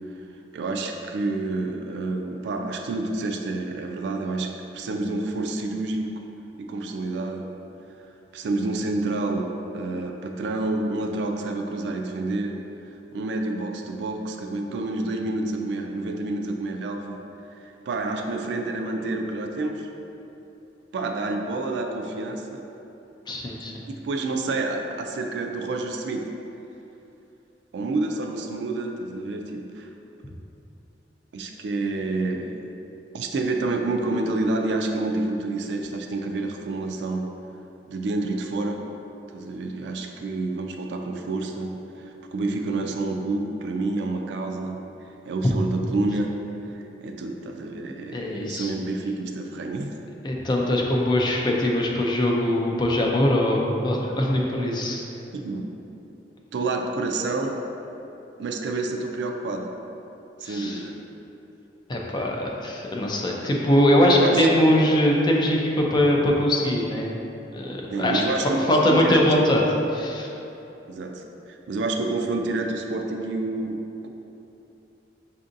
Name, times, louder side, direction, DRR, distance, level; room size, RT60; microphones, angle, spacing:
voice 1, 0.5-6.1 6.6-7.5 8.3-12.6 13.1-17.2 17.6-19.9 20.9-22.6 23.9-26.3 27.7-29.9 31.3-32.6 33.1-37.3 37.9-38.8 39.3-44.9 45.3-46.4 46.7-49.9 55.3-55.7 56.5-57.6 58.4-59.7 60.4-61.0 64.1-64.8 67.9-69.2 70.9-74.1, right 2 dB, 70° right, 3 dB, 0.3 m, -28 dB
voice 2, 23.3-23.7 48.1-48.7 50.2-55.0 60.4-60.8 61.9-67.2 67.5-68.2 68.7-69.6 69.9-70.3, left 1 dB, 25° left, -1 dB, 0.4 m, -22 dB
5.2 x 2.6 x 2.5 m, 2.9 s
head